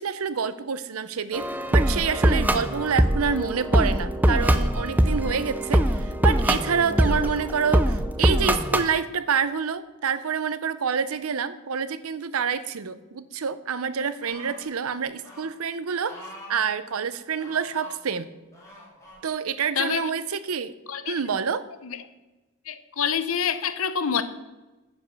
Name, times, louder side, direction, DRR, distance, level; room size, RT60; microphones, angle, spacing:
voice 1, 0.0-16.2 16.5-18.3 19.2-20.7 21.1-21.6, right 6 dB, 80° right, 14 dB, 0.6 m, -27 dB
sound 1, 1.3-8.9, right 1 dB, 10° right, 0.5 m, -22 dB
sound 2, 14.2-14.7 15.2-15.5 16.0-16.6 17.3-17.9 18.5-19.2 19.9-20.0, left 1 dB, 15° left, 3.1 m, -45 dB
voice 2, 19.8-20.1 20.9-21.2 21.8-22.0 22.7-24.2, left 7 dB, 75° left, 11 dB, 0.8 m, -27 dB
9.8 x 5.3 x 6.9 m, 1.1 s
head